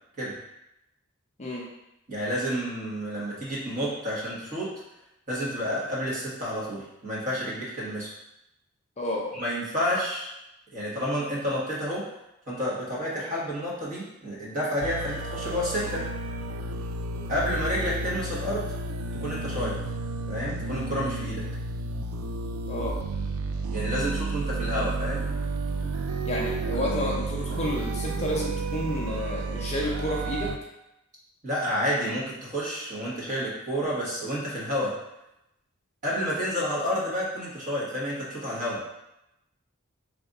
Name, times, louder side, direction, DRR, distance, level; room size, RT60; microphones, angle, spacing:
voice 1, 2.1-4.7 5.3-8.1 9.3-10.3 10.7-12.0 12.5-16.1 17.3-18.8 19.1-19.8 20.3-21.5 23.7-25.3 31.4-34.9 36.0-38.8, equal, 35° right, -7 dB, 1.3 m, -30 dB
voice 2, 9.0-9.3 22.7-23.0 26.2-30.5, left 1 dB, 30° left, -3 dB, 0.5 m, -30 dB
sound 1, 14.8-30.6, right 3 dB, 75° right, 0.3 m, -31 dB
3.3 x 2.5 x 3.9 m, 0.88 s
head